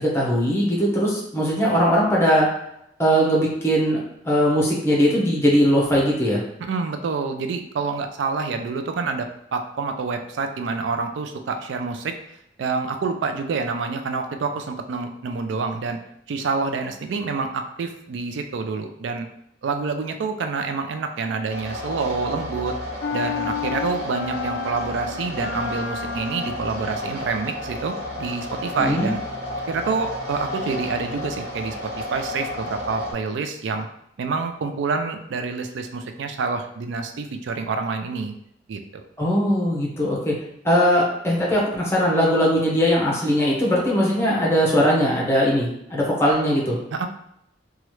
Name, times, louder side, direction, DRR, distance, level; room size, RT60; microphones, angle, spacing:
voice 1, 0.0-2.5 3.0-4.0 4.2-6.4 28.8-29.1 39.2-40.3 40.6-46.8, equal, 15° left, -4 dB, 0.8 m, -20 dB
voice 2, 6.6-12.1 12.6-16.0 16.3-19.3 19.6-22.8 23.1-29.2 29.7-33.9 34.2-38.3 38.7-39.0 46.9-47.1, right 4 dB, 80° right, 6 dB, 0.3 m, -27 dB
sound 1, 21.5-33.1, left 1 dB, 55° right, 1.0 m, -32 dB
sound 2, 23.0-26.9, left 7 dB, 70° left, 0.3 m, -31 dB
3.0 x 2.3 x 3.0 m, 0.76 s
head